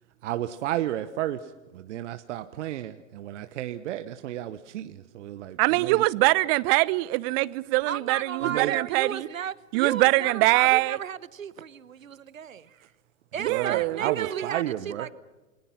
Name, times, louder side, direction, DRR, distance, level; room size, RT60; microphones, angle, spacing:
voice 1, 0.2-1.4 1.7-6.0 8.4-8.7 13.5-15.1, right 13 dB, 65° right, 1.3 m, -32 dB
voice 2, 5.6-9.3 9.7-11.0 13.4-14.5, right 22 dB, 45° right, 1.0 m, -23 dB
voice 3, 7.9-12.8 13.3-15.1, right 8 dB, 85° right, 1.2 m, -34 dB
29.0 x 22.0 x 5.8 m
figure-of-eight pair, 95°, 39 cm